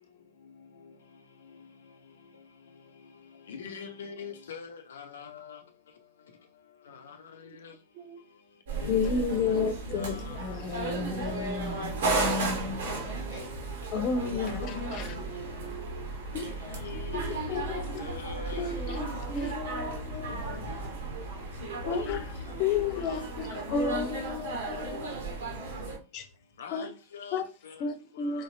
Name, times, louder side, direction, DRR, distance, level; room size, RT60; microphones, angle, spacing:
voice 1, 3.5-5.6 6.9-7.2 7.6-7.7 8.8-9.0 9.4-9.6 10.0-10.4 14.2-14.9 16.7-17.7 18.0-18.7 19.0-19.2 21.8-22.2 22.7-23.2 26.6-27.8, left 6 dB, 65° left, 0.8 m, -43 dB
voice 2, 7.9-8.3 11.3-12.0 15.0-16.3 16.9-18.2 22.5-22.8 25.1-26.0 28.3-28.4, right 11 dB, 40° right, 0.6 m, -49 dB
sound 1, 8.7-26.0, right 3 dB, 60° right, 1.7 m, -34 dB
voice 3, 8.9-12.9 13.3-13.4 13.9-15.1 16.3-16.5 17.1-17.9 18.6-20.5 21.9-22.2 22.6-25.2 26.1-26.3 26.7-26.9 27.3-27.5 27.8-28.4, left 5 dB, 40° left, 1.0 m, -32 dB
4.6 x 4.2 x 2.7 m
figure-of-eight pair, 90°, 0 cm